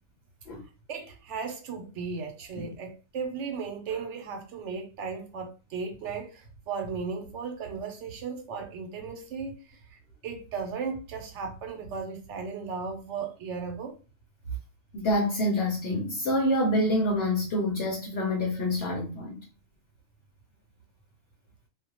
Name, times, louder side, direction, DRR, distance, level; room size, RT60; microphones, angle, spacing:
voice 1, 0.9-14.0, right 5 dB, 75° right, 1.0 m, -36 dB
voice 2, 14.9-19.4, left 1 dB, 60° left, 0.8 m, -27 dB
2.4 x 2.1 x 2.8 m
omnidirectional pair, 1.2 m